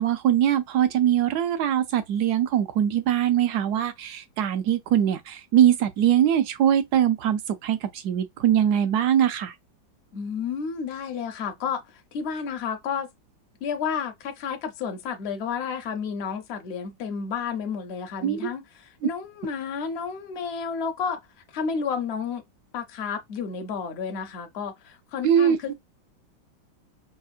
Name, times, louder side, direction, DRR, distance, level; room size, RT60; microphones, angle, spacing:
voice 1, 0.0-9.5 18.2-18.4 25.2-25.7, right 10 dB, 70° right, 1.1 m, -22 dB
voice 2, 10.1-13.1 13.6-21.2 21.5-22.4 22.7-25.7, left 6 dB, 60° left, 0.7 m, -31 dB
5.5 x 2.1 x 2.4 m
omnidirectional pair, 2.0 m